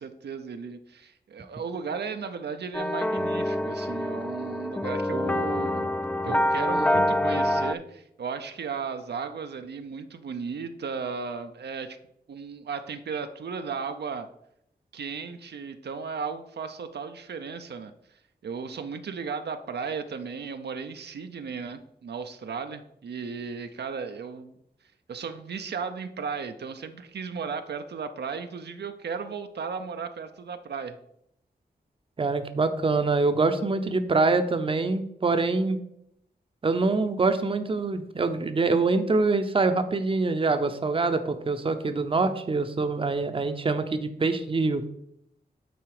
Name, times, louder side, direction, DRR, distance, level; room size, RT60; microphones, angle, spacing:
voice 1, 0.0-5.9 6.2-12.0 12.3-14.3 14.9-17.9 18.4-24.5 25.1-31.0, right 5 dB, 80° right, 8 dB, 0.6 m, -35 dB
sound 1, 2.7-7.7, left 1 dB, 10° left, 0.3 m, -26 dB
voice 2, 32.2-35.8 36.6-44.8, right 3 dB, 30° right, 9 dB, 0.6 m, -25 dB
9.2 x 3.9 x 4.8 m, 0.76 s
wide cardioid pair, 105°, 17 cm